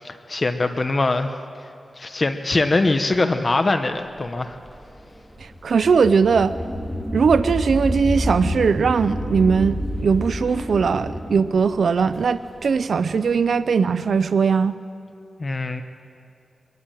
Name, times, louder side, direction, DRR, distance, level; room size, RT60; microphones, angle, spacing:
voice 1, 0.0-1.3 2.0-4.6 15.4-15.8, left 2 dB, 40° left, 8 dB, 1.0 m, -22 dB
sound 1, 4.2-13.2, equal, 5° right, 2.6 m, -29 dB
voice 2, 5.6-6.5 7.1-14.8, right 5 dB, 80° right, 14 dB, 0.5 m, -19 dB
24.0 x 13.5 x 9.1 m, 2.5 s
wide cardioid pair, 80°, 0 cm